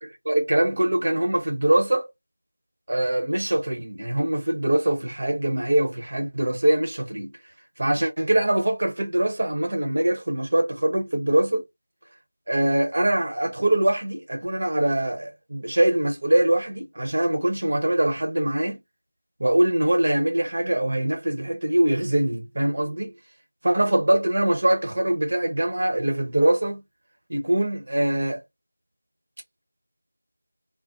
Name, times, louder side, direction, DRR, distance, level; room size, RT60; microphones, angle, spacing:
voice 1, 0.2-2.1 2.9-7.3 7.8-11.6 12.5-18.8 19.4-23.1 23.6-26.8 27.3-28.4, right 1 dB, 45° right, 0.9 m, -23 dB
2.4 x 2.1 x 2.5 m
figure-of-eight pair, 170°, 0 cm